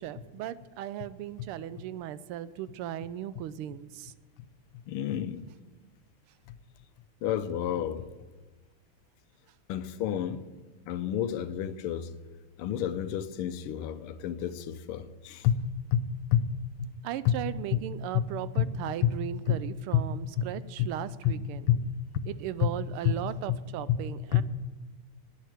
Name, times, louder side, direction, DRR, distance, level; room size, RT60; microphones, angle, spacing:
voice 1, 0.0-4.1 17.0-21.6 22.3-24.4, right 12 dB, 85° right, 1.5 m, -37 dB
voice 2, 4.7-5.5 6.5-6.6 7.2-8.1 9.7-10.5 10.9-12.1 12.6-15.6 15.9-16.5 16.8-16.9 17.2-17.4 17.7-17.8 18.1-18.3 18.6-18.7 19.0-19.2 19.5-19.6 19.9-20.1 20.4-20.5 20.8-21.0 21.2-21.9 22.2-22.3 22.6-22.8 23.0-23.2 23.5-23.6 23.9-24.1 24.3-24.4, left 10 dB, 90° left, 1.6 m, -29 dB
11.0 x 9.3 x 9.1 m
omnidirectional pair, 2.4 m